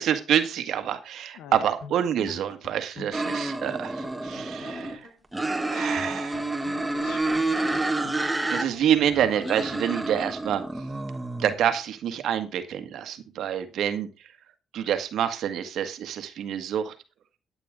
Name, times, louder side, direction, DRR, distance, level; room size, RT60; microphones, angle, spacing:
voice 1, 0.0-5.1 5.7-6.4 8.1-8.2 8.5-10.6 11.4-14.1 14.7-16.9, right 9 dB, 75° right, 9 dB, 1.7 m, -27 dB
voice 2, 1.4-1.7 4.6-5.0 6.9-8.2 8.6-8.7, left 10 dB, 90° left, 12 dB, 0.9 m, -46 dB
sound 1, 1.4-1.5 1.8-5.3 5.5-5.6 6.0-10.2, left 3 dB, 65° left, 3.9 m, -47 dB
sound 2, 3.1-5.0 5.3-8.6 9.0-11.5, right 2 dB, 10° right, 1.8 m, -29 dB
12.5 x 9.1 x 3.7 m, 0.31 s
cardioid pair, 90°, 0 cm